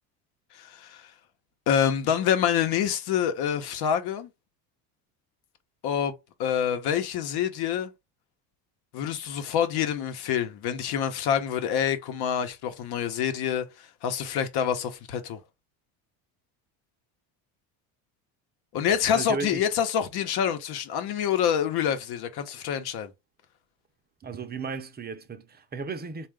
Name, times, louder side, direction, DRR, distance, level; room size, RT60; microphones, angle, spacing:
voice 1, 0.5-1.1 1.7-4.3 5.8-6.1 6.4-7.9 8.9-15.4 18.7-23.1, left 8 dB, 65° left, 0.9 m, -27 dB
voice 2, 19.1-19.7 24.2-26.3, right 5 dB, 25° right, 0.6 m, -35 dB
3.7 x 2.4 x 3.4 m
cardioid pair, 105°, 41 cm